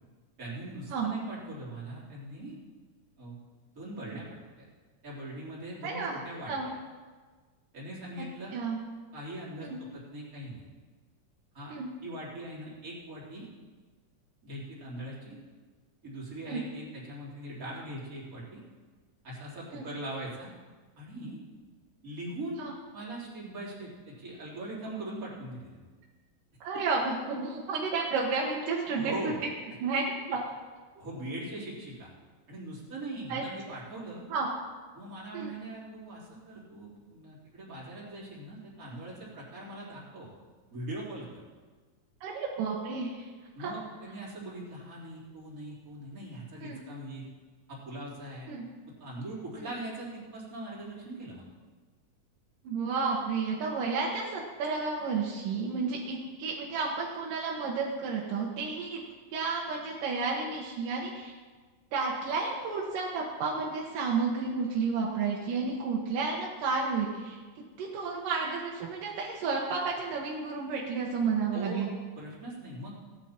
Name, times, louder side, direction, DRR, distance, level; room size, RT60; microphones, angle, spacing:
voice 1, 0.4-2.6 3.2-3.4 3.7-4.3 4.5-4.7 5.0-6.5 7.7-8.6 9.1-10.6 11.5-11.7 12.0-13.5 14.4-15.4 16.0-18.6 19.2-20.5 21.0-21.4 22.0-22.6 22.9-25.9 26.7-26.8 28.9-29.4 31.0-32.1 32.5-34.2 34.9-40.3 40.7-41.4 43.5-47.3 47.7-48.5 49.0-51.5 71.5-71.9 72.2-72.9, right 1 dB, 25° right, -6 dB, 3.6 m, -41 dB
voice 2, 5.8-6.2 6.5-6.7 8.5-8.8 9.6-9.8 11.7-11.9 16.5-16.6 19.7-19.9 22.6-22.7 26.6-29.3 29.8-30.4 33.3-33.4 34.3-34.5 35.3-35.5 42.2-43.3 43.6-43.7 46.6-46.8 48.5-48.6 49.6-49.7 52.6-59.0 59.3-61.3 61.9-67.4 67.8-71.9, right 4 dB, 75° right, -3 dB, 2.9 m, -31 dB
17.5 x 10.0 x 4.5 m, 1.4 s
omnidirectional pair, 3.9 m